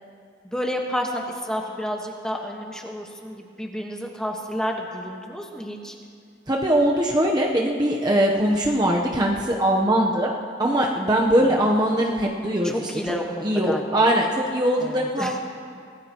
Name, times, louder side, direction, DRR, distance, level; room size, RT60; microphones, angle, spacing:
voice 1, 0.5-5.9 11.3-11.6 12.6-14.0 14.8-15.3, equal, 5° left, 0 dB, 1.4 m, -30 dB
voice 2, 6.5-10.3 10.6-12.9 13.4-15.4, right 1 dB, 20° right, -1 dB, 0.9 m, -21 dB
24.5 x 17.5 x 3.0 m, 2.3 s
head